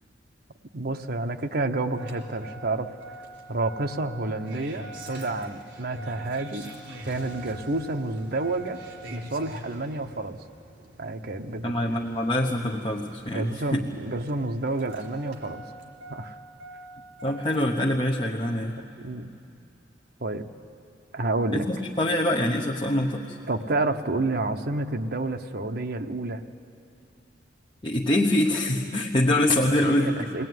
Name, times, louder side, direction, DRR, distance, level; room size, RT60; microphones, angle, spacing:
voice 1, 0.7-2.9 3.5-6.7 7.1-8.8 9.1-10.4 11.0-11.7 13.3-15.7 16.1-16.4 18.8-19.3 20.2-20.5 21.1-21.7 23.5-26.4 29.6-30.5, right 2 dB, 55° right, 6 dB, 1.0 m, -29 dB
Engine starting, 1.9-17.9 19.1-19.2, right 1 dB, 80° right, 4.0 m, -44 dB
voice 2, 11.6-13.8 17.2-18.8 21.5-23.4 27.8-30.5, left 1 dB, 25° left, -1 dB, 1.0 m, -25 dB
23.0 x 18.0 x 9.5 m, 2.7 s
head